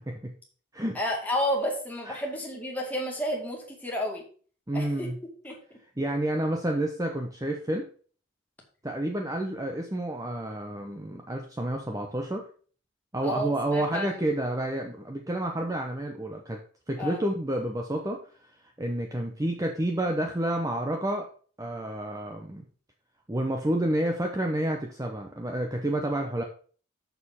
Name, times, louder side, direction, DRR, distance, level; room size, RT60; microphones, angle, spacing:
voice 1, 1.0-4.2 4.7-5.1 5.4-5.6 13.2-14.3 17.0-17.2, equal, 10° left, -1 dB, 2.1 m, -31 dB
voice 2, 4.7-5.2 6.0-7.9 8.8-12.5 13.1-16.6 16.9-18.2 18.8-21.3 21.6-22.6 23.3-26.4, right 1 dB, 15° right, 3 dB, 0.7 m, -29 dB
6.8 x 6.6 x 5.5 m, 0.43 s
head